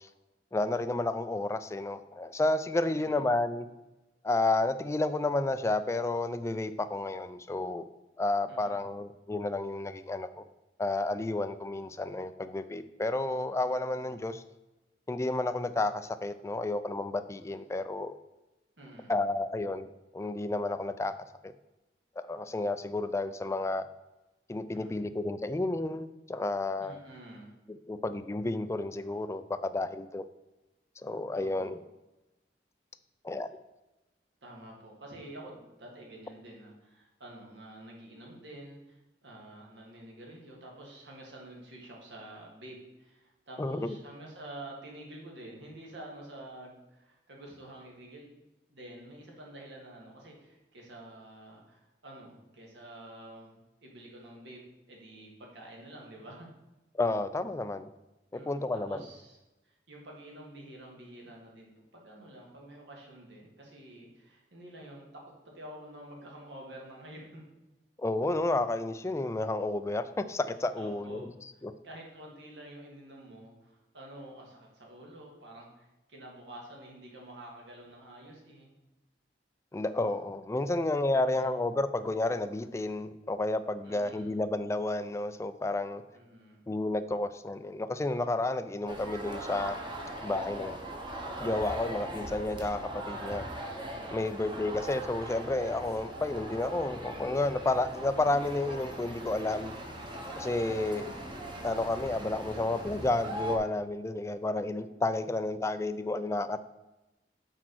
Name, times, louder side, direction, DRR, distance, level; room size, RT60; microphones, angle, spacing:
voice 1, 0.5-3.7 4.2-7.8 8.2-10.4 10.8-14.4 15.1-18.2 19.1-19.9 20.1-21.1 21.4-21.5 22.2-23.9 24.5-27.0 27.7-30.3 31.0-31.8 33.2-33.5 43.6-43.9 57.0-57.9 58.5-59.0 68.0-71.3 71.6-71.7 79.7-86.0 86.7-89.8 90.2-90.7 91.4-93.4 94.1-99.7 100.4-101.1 101.6-106.6, left 2 dB, 15° left, 11 dB, 0.3 m, -31 dB
voice 2, 2.8-3.2 8.5-8.8 18.8-19.1 24.7-25.0 26.8-27.5 31.4-31.7 34.4-48.4 48.7-54.6 54.9-56.5 58.3-59.4 59.6-65.1 65.5-67.4 70.8-71.3 71.8-78.7 81.1-81.6 83.8-84.3 86.1-86.6 94.1-94.4 100.7-101.0, right 1 dB, 85° right, -1 dB, 1.8 m, -49 dB
sound 1, 88.9-103.6, right 1 dB, 30° right, 1.0 m, -40 dB
6.1 x 4.4 x 6.1 m, 1.0 s
head